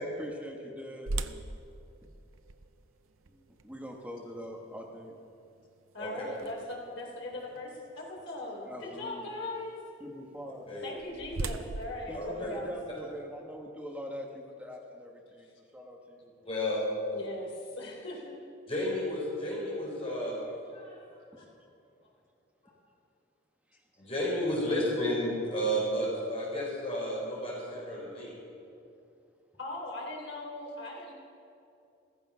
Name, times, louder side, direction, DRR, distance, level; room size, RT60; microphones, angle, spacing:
voice 1, 0.2-1.5 3.3-5.2 8.6-9.3 10.0-10.7 12.1-16.5 23.7-23.8, equal, 5° right, 0 dB, 1.4 m, -43 dB
sound 1, 1.1-7.0 7.6-7.7 8.3-8.5 10.6-13.2, right 3 dB, 90° right, 0.7 m, -41 dB
voice 2, 5.9-9.8 10.8-12.7 15.4-15.5 17.1-18.3 22.0-22.1 29.6-31.1, left 2 dB, 70° left, -2 dB, 3.8 m, -40 dB
voice 3, 12.1-12.5 16.4-16.8 18.7-21.2 24.0-28.3, equal, 30° left, -5 dB, 4.6 m, -32 dB
15.0 x 14.5 x 5.7 m, 2.6 s
head